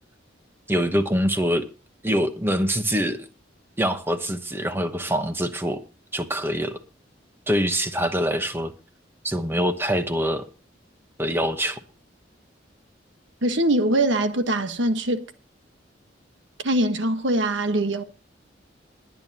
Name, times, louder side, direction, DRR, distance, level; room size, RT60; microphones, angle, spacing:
voice 1, 0.7-1.7 2.0-3.2 3.8-5.8 6.1-6.8 7.5-8.7 9.2-10.5 11.2-11.8, equal, 10° right, 1.0 m, -24 dB
voice 2, 13.4-15.2 16.6-18.0, right 1 dB, 90° right, 1.3 m, -22 dB
21.0 x 9.2 x 2.9 m
head